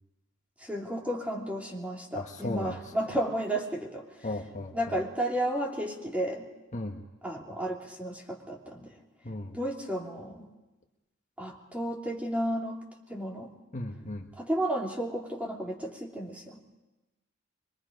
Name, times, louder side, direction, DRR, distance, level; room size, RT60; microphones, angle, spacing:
voice 1, 0.6-4.0 4.7-6.5 7.2-8.9 9.5-10.5 11.4-12.8 13.1-13.5 14.4-16.6, right 1 dB, 5° right, -1 dB, 2.8 m, -32 dB
voice 2, 2.1-2.8 4.2-4.9 6.7-7.0 9.2-9.6 13.7-14.3, left 2 dB, 35° left, 3 dB, 1.3 m, -36 dB
24.5 x 23.5 x 5.2 m, 1.1 s
head